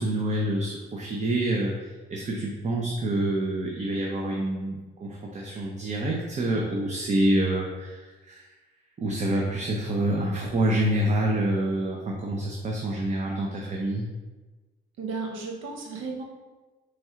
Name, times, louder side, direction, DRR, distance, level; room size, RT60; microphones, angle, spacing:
voice 1, 0.0-8.4 9.0-14.1, right 1 dB, 35° right, -1 dB, 0.6 m, -27 dB
voice 2, 15.0-16.2, right 4 dB, 85° right, 0 dB, 0.9 m, -34 dB
4.2 x 3.2 x 3.6 m, 1.3 s
cardioid pair, 90°, 20 cm